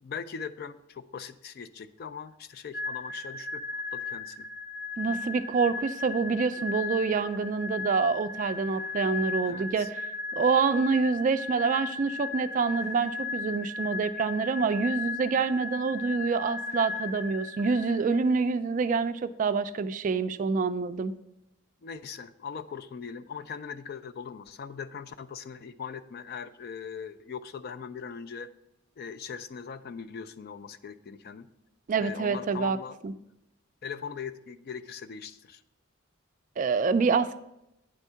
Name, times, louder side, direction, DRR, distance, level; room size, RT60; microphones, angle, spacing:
voice 1, 0.0-4.5 9.5-9.9 21.8-28.5 29.0-31.5 32.0-33.0 33.8-35.6, left 6 dB, 50° left, 11 dB, 0.3 m, -40 dB
sound 1, 2.7-18.3, left 4 dB, 15° left, 1.2 m, -36 dB
voice 2, 5.0-10.0 10.3-21.1 31.9-32.8 33.0-33.1 36.6-37.4, right 5 dB, 40° right, 11 dB, 0.3 m, -27 dB
8.9 x 3.6 x 5.5 m, 0.85 s
head